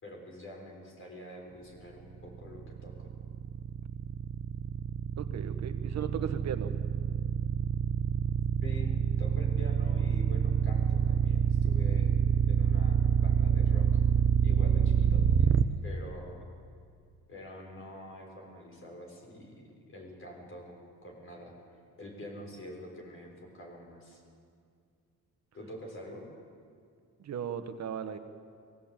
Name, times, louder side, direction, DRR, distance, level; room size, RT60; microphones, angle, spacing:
voice 1, 0.0-3.1 8.6-12.2 12.5-14.0 14.4-16.4 17.3-21.5 22.0-24.2 25.5-26.3, left 1 dB, 45° left, 0 dB, 6.6 m, -46 dB
sound 1, 2.3-15.6, right 8 dB, 40° right, 1.0 m, -26 dB
voice 2, 5.2-6.7 27.2-28.2, right 8 dB, 60° right, 8 dB, 1.4 m, -36 dB
22.0 x 17.0 x 8.9 m, 2.2 s
cardioid pair, 90°, 30 cm